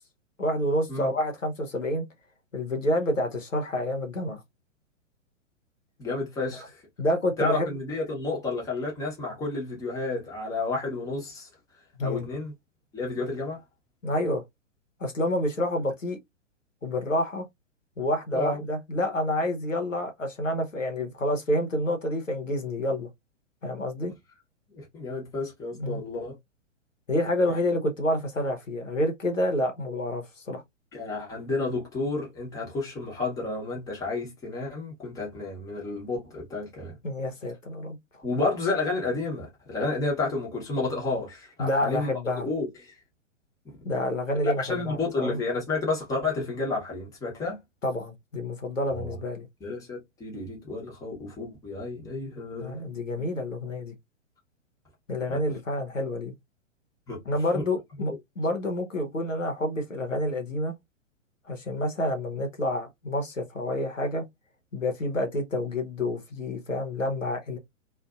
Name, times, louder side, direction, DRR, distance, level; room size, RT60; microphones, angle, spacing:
voice 1, 0.4-2.0 2.5-4.4 7.0-7.7 12.0-12.3 14.0-14.4 15.0-16.2 16.8-17.4 18.0-23.1 23.6-24.1 25.8-26.0 27.1-30.6 37.0-38.2 41.6-42.5 43.8-45.4 47.8-49.5 52.6-53.9 55.1-56.3 57.3-60.7 61.5-64.2 64.7-67.6, left 1 dB, 90° left, 0.9 m, -28 dB
voice 2, 6.0-6.8 7.4-11.5 12.0-12.5 12.9-13.6 18.3-18.6 24.7-26.4 30.9-37.0 38.2-42.1 42.4-43.0 43.6-43.8 44.4-47.6 48.9-49.2 49.6-52.8 55.3-55.4 57.1-57.2 57.5-57.6, left 3 dB, 10° left, 0.9 m, -31 dB
2.6 x 2.4 x 2.3 m
figure-of-eight pair, 115°, 37 cm